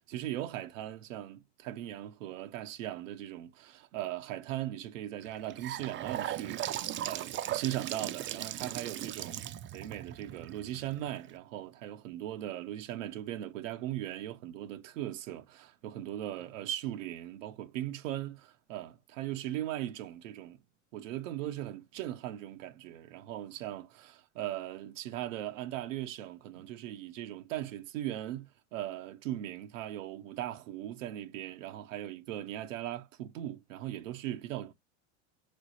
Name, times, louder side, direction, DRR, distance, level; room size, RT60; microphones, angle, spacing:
voice 1, 0.1-20.6 20.9-34.7, right 13 dB, 75° right, 0.8 m, -39 dB
Gurgling / Sink (filling or washing) / Bathtub (filling or washing), 5.2-11.3, right 12 dB, 30° right, 0.5 m, -38 dB
3.9 x 3.2 x 4.1 m
hypercardioid pair, 95°, 38 cm